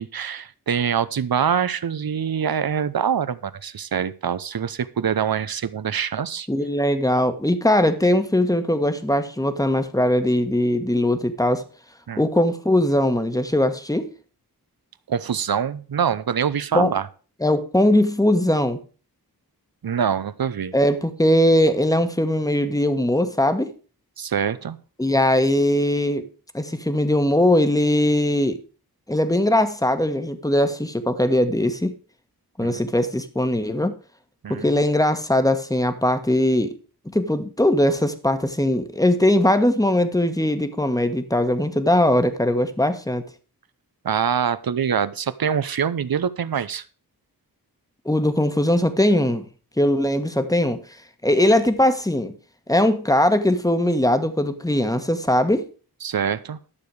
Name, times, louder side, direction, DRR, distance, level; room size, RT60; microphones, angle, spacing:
voice 1, 0.0-6.5 12.1-12.2 15.1-17.1 19.8-20.7 24.2-24.8 32.6-32.8 34.4-34.8 44.0-46.8 56.0-56.6, right 7 dB, 70° right, 16 dB, 0.7 m, -24 dB
voice 2, 6.5-11.6 12.2-14.1 16.7-16.9 17.4-18.8 20.7-23.7 25.0-26.3 26.5-28.6 29.1-31.9 32.6-33.9 34.5-36.7 37.1-43.2 48.0-49.4 49.8-50.8 51.2-52.3 52.7-55.6, left 1 dB, 10° left, 9 dB, 1.3 m, -20 dB
12.0 x 6.9 x 4.8 m, 0.38 s
wide cardioid pair, 60°, 38 cm